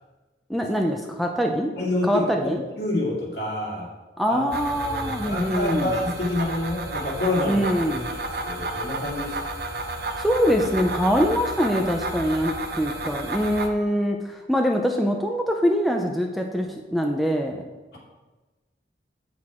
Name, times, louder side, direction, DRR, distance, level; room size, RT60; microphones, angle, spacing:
voice 1, 0.5-1.7 2.0-2.6 4.2-5.9 7.5-8.1 10.2-17.6, equal, ahead, 2 dB, 0.5 m, -24 dB
voice 2, 1.8-2.3 2.8-3.9 4.3-4.4 4.8-7.7 8.4-9.4, left 2 dB, 70° left, -4 dB, 2.3 m, -27 dB
sound 1, 4.5-13.7, right 2 dB, 55° right, 0.6 m, -32 dB
7.7 x 6.2 x 4.3 m, 1.2 s
head